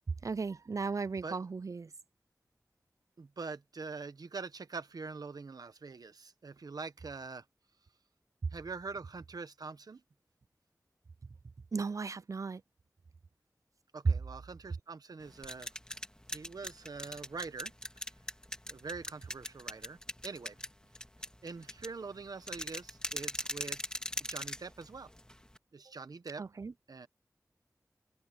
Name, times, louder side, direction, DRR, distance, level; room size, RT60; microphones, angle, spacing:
voice 1, 0.2-1.9 11.7-12.6 14.0-14.1 26.4-26.7, right 4 dB, 60° right, 0.4 m, -34 dB
voice 2, 3.2-7.4 8.5-10.0 13.9-15.7 16.3-18.0 18.7-20.0 20.2-20.6 21.4-23.9 24.2-25.1 25.7-26.4 26.9-27.1, right 4 dB, 85° right, 1.1 m, -44 dB
sound 1, 15.2-25.6, left 1 dB, 10° left, 2.0 m, -41 dB
wide cardioid pair, 50°, 6 cm